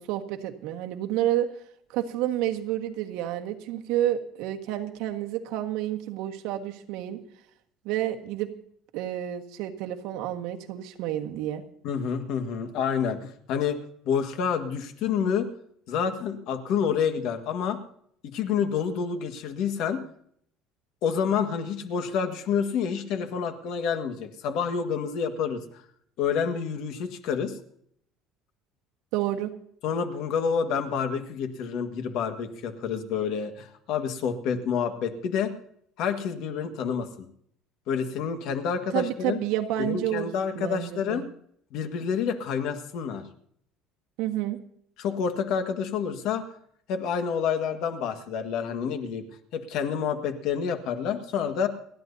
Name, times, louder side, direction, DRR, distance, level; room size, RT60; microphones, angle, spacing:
voice 1, 0.0-1.5 1.9-7.2 7.8-8.5 8.9-11.6 29.1-29.5 38.9-41.2 44.2-44.6, right 13 dB, 75° right, 4 dB, 1.5 m, -29 dB
voice 2, 11.8-13.8 14.0-15.5 15.9-17.8 18.2-20.0 21.0-25.6 26.2-27.6 29.8-35.5 36.0-37.1 37.9-39.4 39.8-41.3 41.7-43.3 45.0-46.4 46.9-49.2 49.5-51.7, left 7 dB, 60° left, 7 dB, 1.7 m, -28 dB
30.0 x 10.5 x 2.7 m, 0.67 s
cardioid pair, 165°, 0 cm